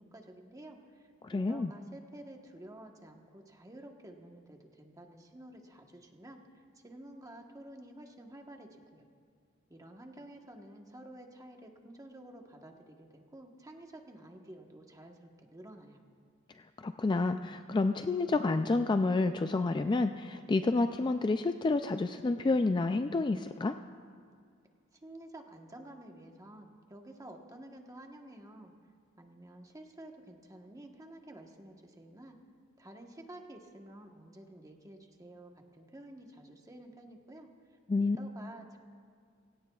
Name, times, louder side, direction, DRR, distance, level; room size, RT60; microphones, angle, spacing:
voice 1, 0.0-6.4 6.7-9.1 9.7-16.0 25.0-28.7 29.2-32.4 32.8-37.5 38.0-38.8, right 1 dB, 15° right, 2 dB, 1.2 m, -51 dB
voice 2, 1.2-1.7 16.6-23.8 37.9-38.2, left 3 dB, 20° left, 8 dB, 0.3 m, -29 dB
27.0 x 17.0 x 2.4 m, 2.2 s
head